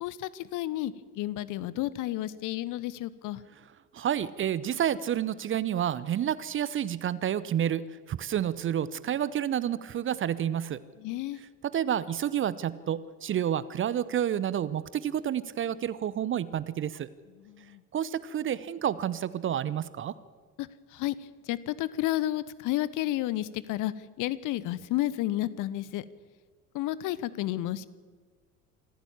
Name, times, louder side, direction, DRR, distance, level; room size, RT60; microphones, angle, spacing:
voice 1, 0.0-3.4 11.0-11.4 17.4-17.8 20.6-21.1 21.5-23.9 24.2-26.0 26.7-27.9, left 15 dB, 45° left, 18 dB, 0.9 m, -31 dB
voice 2, 3.9-10.8 11.6-17.1 17.9-20.1, right 10 dB, 25° right, 18 dB, 0.7 m, -29 dB
26.0 x 14.5 x 7.2 m, 1.5 s
figure-of-eight pair, 65°, 45 cm